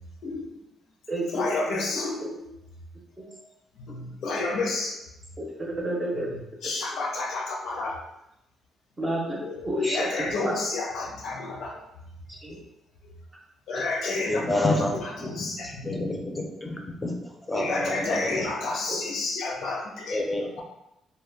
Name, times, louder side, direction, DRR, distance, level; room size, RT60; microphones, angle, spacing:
voice 1, 0.2-0.6 1.3-2.5 3.2-3.3 3.8-5.0 6.1-8.0 9.4-11.8 12.5-12.6 13.0-13.1 13.7-14.6 15.2-15.9 17.5-20.2, left 3 dB, 75° left, -1 dB, 0.5 m, -30 dB
voice 2, 1.1-1.8 2.2-2.3 5.5-6.3 9.0-9.4 9.6-10.5 12.4-12.6 18.9-19.0, right 1 dB, 20° right, -1 dB, 0.6 m, -30 dB
voice 3, 14.3-18.5 20.1-20.6, left 1 dB, 20° left, 1 dB, 0.5 m, -29 dB
2.1 x 2.1 x 3.4 m, 0.86 s
cardioid pair, 90°, 0 cm